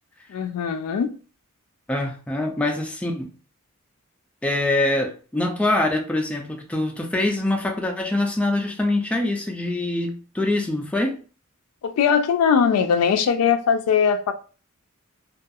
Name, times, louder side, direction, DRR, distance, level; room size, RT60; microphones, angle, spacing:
voice 1, 0.3-1.1 11.8-14.3, left 6 dB, 85° left, 0.3 m, -20 dB
voice 2, 1.9-3.3 4.4-11.2, left 2 dB, 5° left, 0.3 m, -24 dB
2.3 x 2.3 x 2.6 m
head